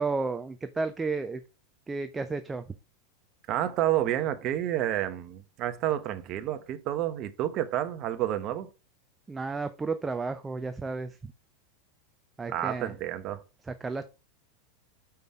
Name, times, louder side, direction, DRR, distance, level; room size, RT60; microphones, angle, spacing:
voice 1, 0.0-1.4 1.9-2.6 9.3-11.3 12.4-12.9 13.6-14.1, right 4 dB, 15° right, 0.6 m, -32 dB
voice 2, 3.5-8.7 12.5-13.4, right 12 dB, 45° right, 1.0 m, -29 dB
5.8 x 5.3 x 4.8 m
hypercardioid pair, 90°, 0 cm